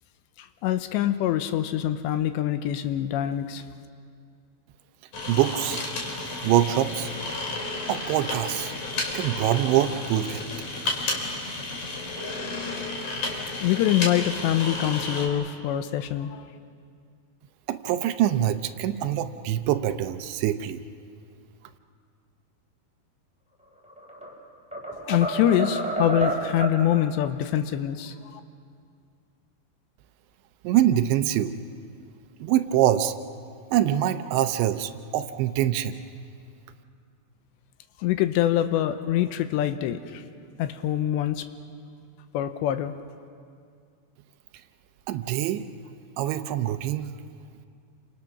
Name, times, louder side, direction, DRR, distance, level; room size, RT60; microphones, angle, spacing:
voice 1, 0.4-3.6 13.6-16.4 24.9-28.4 38.0-40.2 40.6-41.4 42.3-42.9, left 11 dB, 80° left, 10 dB, 2.9 m, -25 dB
sound 1, 5.1-15.3, left 2 dB, 45° left, 4.1 m, -32 dB
voice 2, 5.3-5.8 6.4-7.1 7.9-8.7 9.1-10.4 17.7-20.8 30.6-31.5 32.4-33.1 33.7-36.0 45.1-45.6 46.2-47.1, right 12 dB, 80° right, 9 dB, 3.0 m, -24 dB
sound 2, 23.8-24.3 24.7-26.8, right 2 dB, ahead, 3.3 m, -29 dB
29.5 x 26.5 x 6.0 m, 2.3 s
omnidirectional pair, 5.2 m